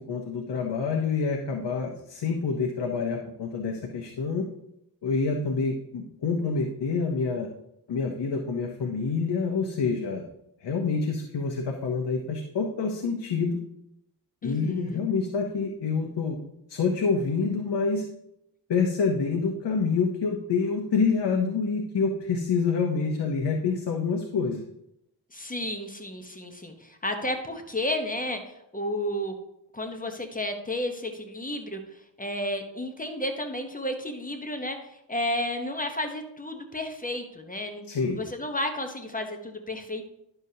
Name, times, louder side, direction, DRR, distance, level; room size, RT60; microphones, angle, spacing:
voice 1, 0.1-4.5 5.0-7.5 7.9-10.2 10.6-13.6 14.4-16.4 16.7-18.0 18.7-24.6 37.9-38.2, left 4 dB, 70° left, 2 dB, 0.9 m, -27 dB
voice 2, 14.4-15.0 25.3-29.3 29.7-37.8 38.1-40.0, left 1 dB, 20° left, 5 dB, 1.0 m, -32 dB
10.5 x 6.7 x 2.8 m, 0.80 s
wide cardioid pair, 90°, 43 cm